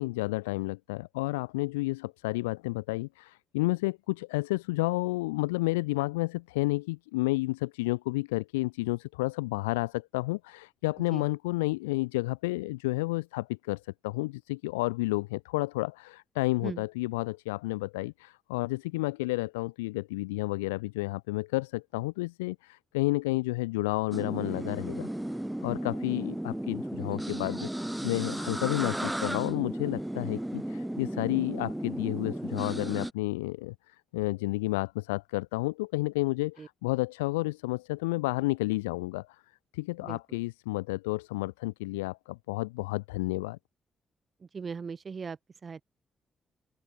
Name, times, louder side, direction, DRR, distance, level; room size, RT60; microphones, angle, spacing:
voice 1, 0.0-25.1 25.6-39.4 39.7-43.6, left 22 dB, 85° left, 4.0 m, -31 dB
sound 1, 24.1-33.1, right 1 dB, 10° right, 2.5 m, -34 dB
voice 2, 40.0-40.4 44.5-45.8, right 5 dB, 45° right, 4.7 m, -39 dB
open air
hypercardioid pair, 40°, 0 cm